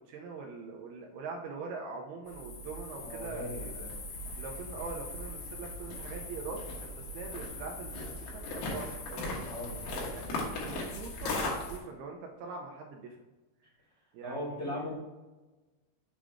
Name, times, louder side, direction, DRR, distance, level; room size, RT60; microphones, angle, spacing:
voice 1, 0.1-3.7 4.4-6.6 7.0-9.5 10.1-13.2 14.1-14.9, right 4 dB, 90° right, 1 dB, 2.3 m, -43 dB
sound 1, 2.3-11.8, left 2 dB, 65° left, 3.2 m, -38 dB
voice 2, 3.0-3.9 9.4-10.1 14.2-14.9, left 1 dB, 40° left, -5 dB, 1.0 m, -39 dB
7.4 x 5.1 x 3.5 m, 1.2 s
omnidirectional pair, 5.2 m